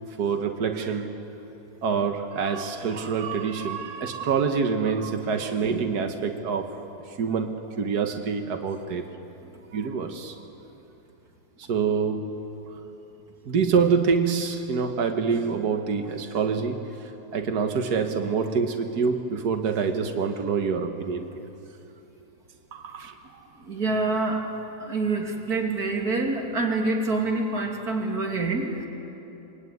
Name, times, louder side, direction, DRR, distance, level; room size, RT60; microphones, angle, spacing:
voice 1, 0.2-1.1 1.8-6.8 7.1-9.1 9.7-10.4 11.6-12.3 13.5-21.5 22.7-23.2, right 5 dB, 65° right, 5 dB, 1.0 m, -26 dB
voice 2, 23.7-24.5 24.8-28.9, right 3 dB, 30° right, 1 dB, 2.9 m, -26 dB
25.0 x 23.0 x 9.5 m, 3.0 s
omnidirectional pair, 3.5 m